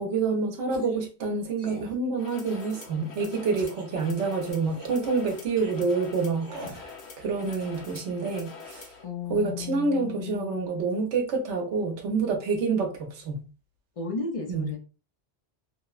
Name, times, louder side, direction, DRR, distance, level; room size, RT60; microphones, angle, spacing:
voice 1, 0.0-8.9 9.3-13.4 14.5-14.7, right 4 dB, 90° right, 3 dB, 1.0 m, -28 dB
sound 1, 0.7-1.0 1.6-1.9 2.5-3.0 3.5-3.9 4.6-5.0 5.6-5.7 6.4-6.8, equal, 25° right, 0.7 m, -43 dB
sound 2, 2.2-9.0, left 4 dB, 75° left, 1.0 m, -45 dB
voice 2, 9.0-10.6 14.0-14.8, left 4 dB, 55° left, 1 dB, 0.3 m, -34 dB
2.9 x 2.0 x 2.3 m, 0.35 s
omnidirectional pair, 1.1 m